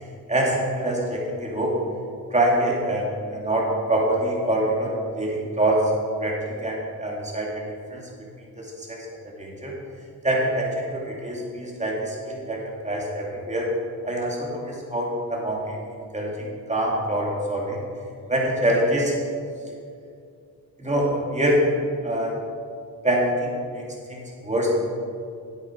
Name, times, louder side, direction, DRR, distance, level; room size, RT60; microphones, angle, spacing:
voice 1, 0.3-1.7 2.3-5.9 6.2-7.6 7.9-8.0 8.4-9.7 10.2-13.7 14.0-15.8 16.1-17.8 18.3-19.1 20.8-21.6 22.0-22.4 23.0-24.9, right 1 dB, 20° right, -3 dB, 2.8 m, -25 dB
9.7 x 8.7 x 4.7 m, 2.3 s
cardioid pair, 65°, 35 cm